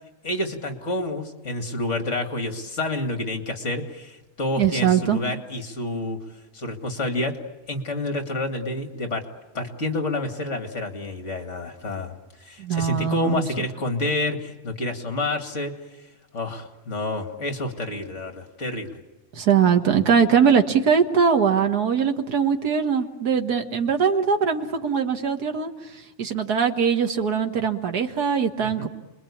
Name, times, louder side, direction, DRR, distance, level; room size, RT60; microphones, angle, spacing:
voice 1, 0.2-6.2 6.5-7.3 7.7-9.2 9.5-15.7 16.3-19.0 28.6-28.9, left 2 dB, 50° left, 6 dB, 2.6 m, -29 dB
voice 2, 4.6-5.2 12.6-13.4 19.3-25.7 26.2-28.9, right 7 dB, 85° right, 5 dB, 2.1 m, -21 dB
29.5 x 21.5 x 8.6 m, 1.1 s
omnidirectional pair, 1.6 m